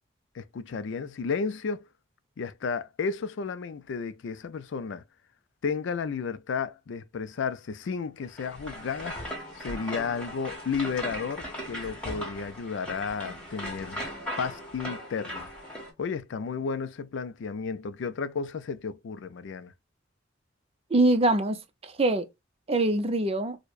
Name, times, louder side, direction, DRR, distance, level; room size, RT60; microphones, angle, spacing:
voice 1, 0.3-1.9 2.4-5.0 5.6-9.2 9.5-14.0 14.4-15.5 16.0-19.7, left 5 dB, 65° left, 0.4 m, -33 dB
sound 1, 8.3-15.9, equal, 5° left, 1.5 m, -38 dB
voice 2, 20.9-22.3 22.7-23.6, right 2 dB, 30° right, 0.6 m, -24 dB
4.5 x 2.1 x 2.4 m
head